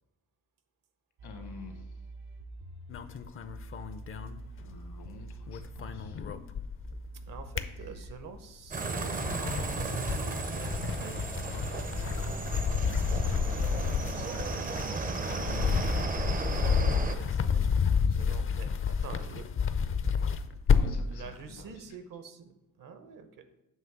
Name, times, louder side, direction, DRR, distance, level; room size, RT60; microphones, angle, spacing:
voice 1, 1.2-2.0 4.6-6.2 7.7-8.0 15.3-16.2 18.3-18.4 20.7-22.0, left 5 dB, 75° left, 5 dB, 1.3 m, -50 dB
sound 1, 1.2-8.1, right 2 dB, 90° right, 1.1 m, -46 dB
sound 2, 2.9-5.1 5.3-6.9 7.3-8.4 8.9-21.1, left 6 dB, 35° left, 0.5 m, -30 dB
voice 2, 7.3-14.4 17.1-19.5 21.1-23.4, right 6 dB, 60° right, 9 dB, 0.8 m, -48 dB
sound 3, 8.7-17.2, right 3 dB, 25° right, 0.5 m, -34 dB
7.4 x 3.1 x 5.9 m, 0.95 s
cardioid pair, 90°, 37 cm